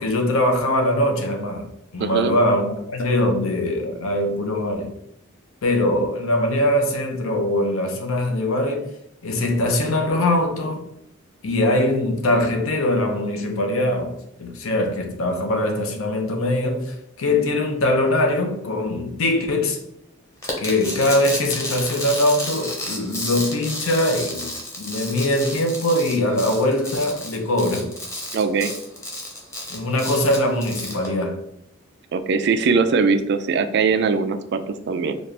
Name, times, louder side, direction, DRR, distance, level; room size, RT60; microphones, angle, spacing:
voice 1, 0.0-1.7 1.9-4.9 5.6-8.9 9.2-10.9 11.4-14.1 14.4-19.8 20.6-24.5 24.8-27.9 29.7-31.4, left 1 dB, 80° left, 0.7 m, -22 dB
voice 2, 2.0-2.4 28.3-28.7 32.1-35.2, right 5 dB, 55° right, 0.3 m, -21 dB
sound 1, 20.4-31.1, left 1 dB, 15° left, 0.7 m, -32 dB
4.1 x 2.4 x 3.2 m
head